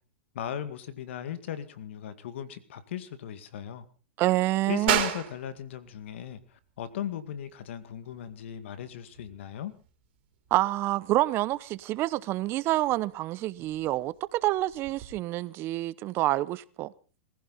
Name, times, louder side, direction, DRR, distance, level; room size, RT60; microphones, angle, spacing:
voice 1, 0.3-3.8 4.7-9.7, left 10 dB, 75° left, 2.0 m, -37 dB
voice 2, 4.2-5.0 10.5-16.9, right 16 dB, 35° right, 0.8 m, -27 dB
sound 1, 4.9-15.1, right 12 dB, 55° right, 3.8 m, -37 dB
22.0 x 15.5 x 4.2 m
hypercardioid pair, 130°, 7 cm